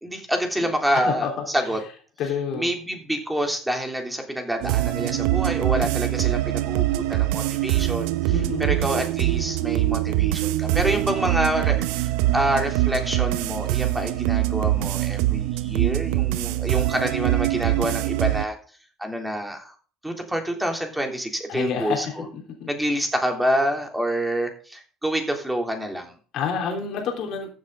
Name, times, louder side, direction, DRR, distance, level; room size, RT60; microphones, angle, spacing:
voice 1, 0.0-1.8 2.5-18.5 19.0-19.7 20.0-22.3 22.7-26.1, equal, 5° right, 3 dB, 3.4 m, -27 dB
voice 2, 2.2-2.7 8.3-8.9 21.5-22.1 22.6-22.7 26.3-27.5, left 6 dB, 55° left, 2 dB, 3.6 m, -28 dB
sound 1, 4.6-18.4, right 16 dB, 70° right, 0.6 m, -23 dB
14.5 x 7.6 x 4.0 m, 0.40 s
hypercardioid pair, 65°, 0 cm